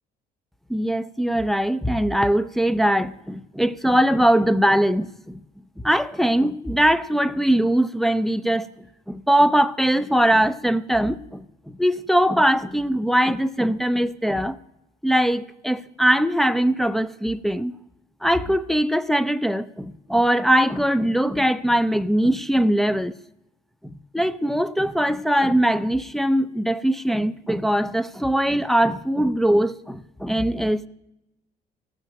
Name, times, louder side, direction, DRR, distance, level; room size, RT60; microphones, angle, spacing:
voice 1, 0.7-5.4 5.8-8.7 9.1-14.6 15.0-17.7 18.2-23.1 23.8-30.9, right 1 dB, ahead, 0.5 m, -21 dB
15.5 x 6.4 x 8.9 m
cardioid pair, 110°, 17 cm